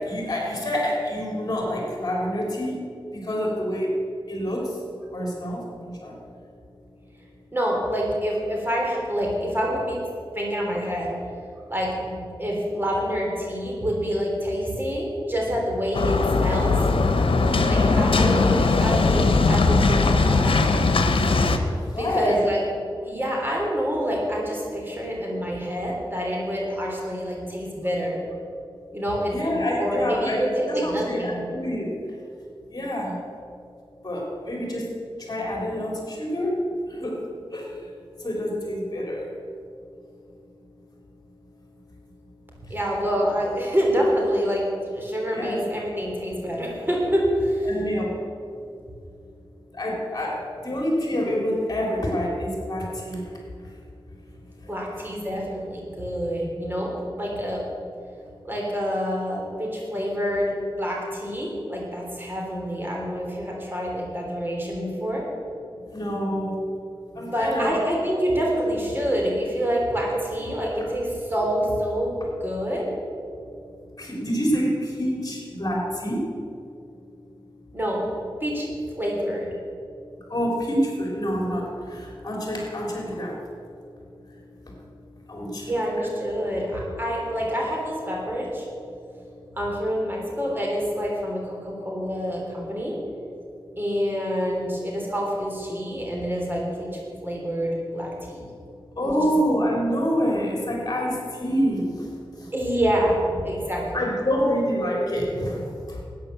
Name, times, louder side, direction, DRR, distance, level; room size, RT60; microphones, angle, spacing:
voice 1, 0.0-2.8 3.1-3.9 4.3-4.8 5.1-6.1 17.6-17.9 21.9-22.4 29.3-31.9 32.7-33.2 34.0-34.9 35.2-36.6 36.9-37.2 37.5-37.9 38.2-39.3 42.7-42.8 45.3-45.6 47.7-48.1 49.7-53.3 53.6-53.7 54.6-54.7 65.7-66.6 67.1-67.8 74.0-76.2 80.3-83.4 84.3-84.4 84.7-84.8 85.3-85.7 98.9-102.5 103.9-106.0, equal, 45° left, -2 dB, 3.7 m, -27 dB
voice 2, 7.5-10.0 10.3-11.2 11.7-16.7 17.7-20.7 22.0-22.6 23.0-28.2 28.9-31.4 42.7-44.6 44.9-47.7 54.7-56.9 57.2-57.6 58.4-65.2 67.1-72.9 77.7-78.0 78.4-78.7 78.9-79.5 85.7-88.7 89.6-92.9 93.8-98.5 99.0-99.3 102.5-104.1, equal, 25° right, -2 dB, 3.4 m, -27 dB
sound 1, 15.9-21.6, left 3 dB, 90° left, 1.0 m, -20 dB
13.0 x 9.4 x 7.0 m, 2.4 s
wide cardioid pair, 75°, 9 cm